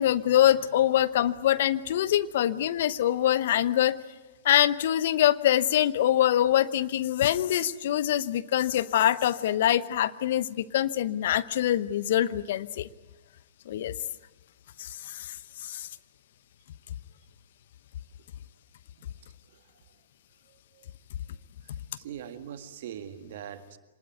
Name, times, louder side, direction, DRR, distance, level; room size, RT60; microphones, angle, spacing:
voice 1, 0.0-4.0 4.4-12.9 13.7-13.9 14.8-15.9, left 12 dB, 60° left, 16 dB, 0.9 m, -24 dB
voice 2, 21.6-23.8, right 9 dB, 60° right, 9 dB, 1.9 m, -42 dB
25.5 x 20.0 x 9.3 m, 1.2 s
figure-of-eight pair, 110°, 0 cm